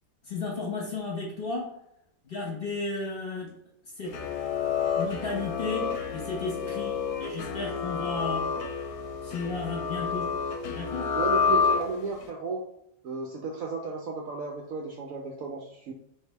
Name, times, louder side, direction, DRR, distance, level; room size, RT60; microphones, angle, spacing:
voice 1, 0.2-1.8 2.2-3.6 3.8-4.2 5.0-8.5 9.2-10.4 10.7-11.2, left 3 dB, 40° left, -3 dB, 0.9 m, -34 dB
sound 1, 4.0-12.3, left 6 dB, 65° left, 1.1 m, -29 dB
voice 2, 11.1-12.6 13.0-15.9, right 4 dB, 75° right, 1 dB, 0.7 m, -34 dB
3.4 x 2.7 x 4.4 m, 0.76 s
omnidirectional pair, 2.0 m